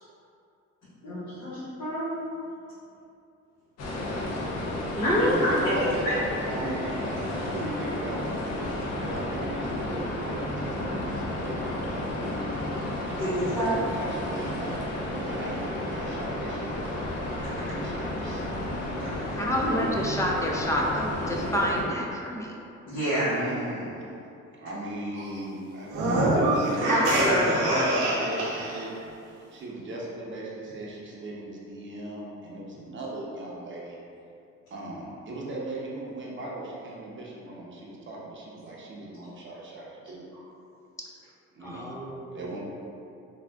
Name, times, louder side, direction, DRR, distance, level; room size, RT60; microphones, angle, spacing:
voice 1, 1.0-2.1 5.0-5.7 6.0-6.1 6.4-6.6 13.2-13.7 19.1-19.4 22.9-23.3 26.8-27.8, equal, 75° left, -14 dB, 1.2 m, -27 dB
sound 1, 3.8-21.8, left 1 dB, 60° left, 0.6 m, -32 dB
voice 2, 4.4-7.2 7.5-8.6 8.9-12.6 13.7-14.8 15.2-16.8 17.4-18.4 23.2-24.0 24.5-28.9 29.5-34.0 34.7-40.3 41.5-41.9 42.3-42.6, right 1 dB, 40° right, -4 dB, 0.7 m, -38 dB
voice 3, 5.0-5.4 19.4-22.5 41.0-41.1 41.6-42.5, equal, 10° left, -2 dB, 0.3 m, -28 dB
sound 2, 25.9-28.8, right 1 dB, 85° right, 0.6 m, -25 dB
3.5 x 2.3 x 2.3 m, 2.6 s
cardioid pair, 90°, 30 cm